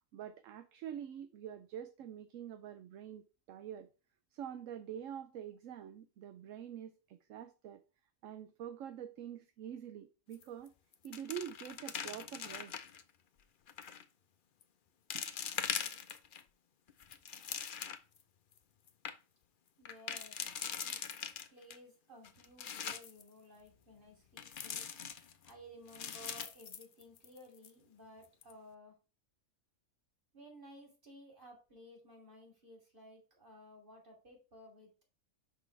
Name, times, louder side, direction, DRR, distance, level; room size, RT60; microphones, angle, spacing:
voice 1, 0.1-3.9 4.3-7.8 8.2-10.7 11.0-12.7 15.1-15.2, right 9 dB, 75° right, 1.0 m, -46 dB
sound 1, 10.3-10.7 10.9-13.0 13.7-14.0 14.6-14.7 15.1-16.4 16.9-18.2 18.6-18.7 18.9-19.1 19.9-21.8 22.2-23.2 24.4-25.5 25.9-27.4 27.6-27.7 28.2-28.5, left 7 dB, 50° left, 0.7 m, -42 dB
voice 2, 19.8-21.0 21.5-24.9 25.4-29.0 30.3-34.9, equal, 40° right, 3.0 m, -56 dB
6.1 x 5.7 x 3.2 m
omnidirectional pair, 1.4 m